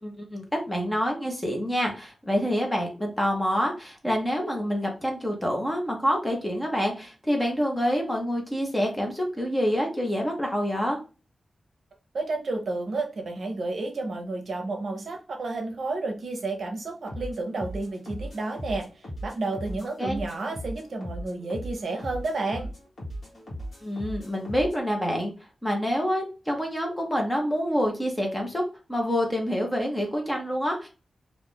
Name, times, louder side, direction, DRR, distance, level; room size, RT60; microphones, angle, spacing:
voice 1, 0.0-11.0 20.0-20.2 23.8-25.3 25.6-28.6 28.9-30.9, equal, 10° left, 1 dB, 0.7 m, -27 dB
voice 2, 12.1-22.7, right 2 dB, 60° right, 3 dB, 0.7 m, -31 dB
sound 1, 17.1-24.8, equal, 50° left, 1.3 m, -38 dB
2.5 x 2.3 x 3.5 m, 0.32 s
wide cardioid pair, 180°, 0 cm